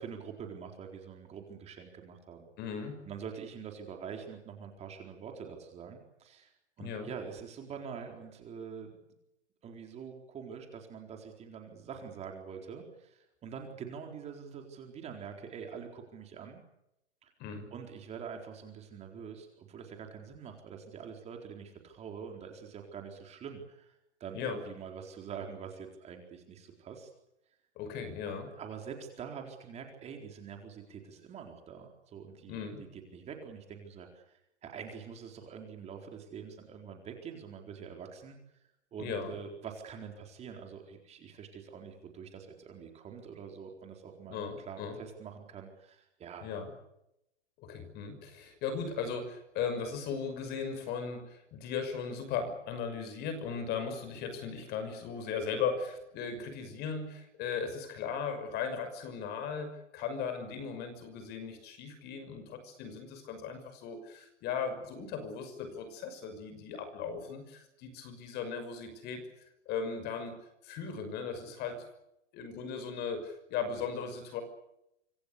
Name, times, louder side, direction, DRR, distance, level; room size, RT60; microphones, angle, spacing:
voice 1, 0.0-2.5 3.1-6.5 6.8-8.9 9.6-16.6 17.2-17.3 17.7-27.1 28.6-38.4 38.9-46.5, right 7 dB, 20° right, 3 dB, 4.2 m, -45 dB
voice 2, 2.6-3.0 6.8-7.1 17.4-17.7 24.3-24.6 27.8-28.5 32.5-32.8 39.0-39.4 44.3-45.0 46.4-46.7 47.6-69.2 69.7-70.4 70.6-71.8 72.3-74.4, left 6 dB, 30° left, 9 dB, 6.1 m, -37 dB
26.0 x 25.5 x 6.8 m, 0.84 s
hypercardioid pair, 155°, 35 cm